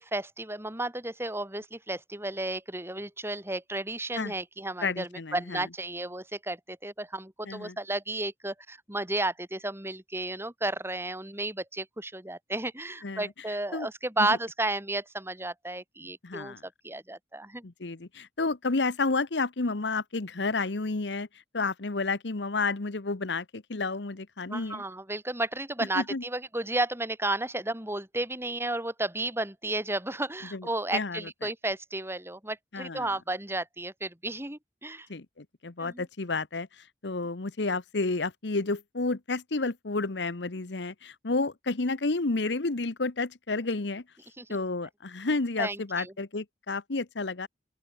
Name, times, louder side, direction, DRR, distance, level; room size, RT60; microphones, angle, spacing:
voice 1, 0.0-16.6 16.8-17.6 24.5-35.1 35.8-36.0 44.4-44.5 45.6-46.1, right 2 dB, 15° right, 5.6 m, -33 dB
voice 2, 4.8-5.7 7.4-7.8 13.0-13.3 13.7-13.9 14.2-14.4 16.2-16.6 17.6-21.3 21.5-24.8 25.9-26.2 30.5-30.7 30.9-31.5 32.7-33.1 35.1-44.0 44.5-47.5, left 3 dB, 70° left, 1.1 m, -31 dB
open air
head